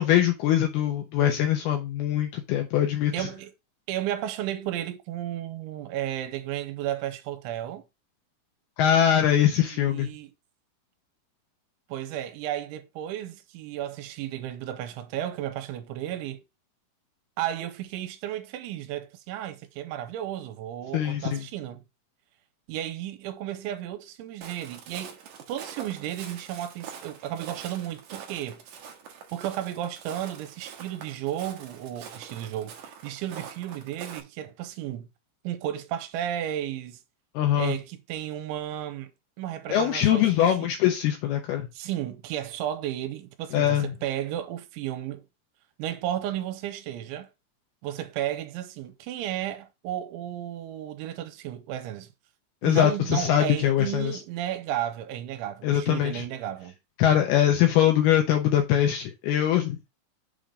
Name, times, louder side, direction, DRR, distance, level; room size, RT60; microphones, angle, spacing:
voice 1, 0.0-3.3 8.8-10.1 20.9-21.4 37.3-37.8 39.7-41.7 43.5-43.9 52.6-54.2 55.6-56.2 57.0-59.8, left 11 dB, 75° left, 2.3 m, -22 dB
voice 2, 3.1-3.5 3.9-7.8 9.7-10.3 11.9-16.4 17.4-21.8 22.7-25.2 25.5-28.6 29.3-35.1 35.4-37.0 37.6-39.1 39.4-40.7 41.7-45.2 45.8-47.3 47.8-52.1 52.6-56.7, right 12 dB, 90° right, 3.1 m, -33 dB
Walk footsteps, 24.4-34.2, right 7 dB, 70° right, 2.0 m, -44 dB
7.2 x 3.8 x 5.0 m
omnidirectional pair, 5.5 m